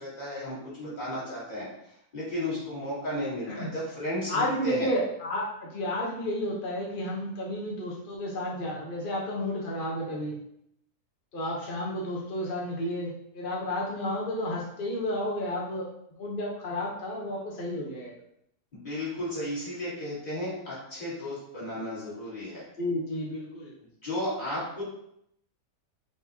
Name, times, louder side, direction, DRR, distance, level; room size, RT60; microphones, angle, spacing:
voice 1, 0.0-1.7 2.1-4.9 18.7-22.6 24.0-24.8, left 1 dB, 25° left, -8 dB, 2.0 m, -34 dB
voice 2, 4.3-10.4 11.3-15.8 16.1-18.1 22.8-23.7, left 1 dB, 45° left, -4 dB, 0.7 m, -32 dB
4.7 x 4.1 x 2.7 m, 0.75 s
omnidirectional pair, 1.8 m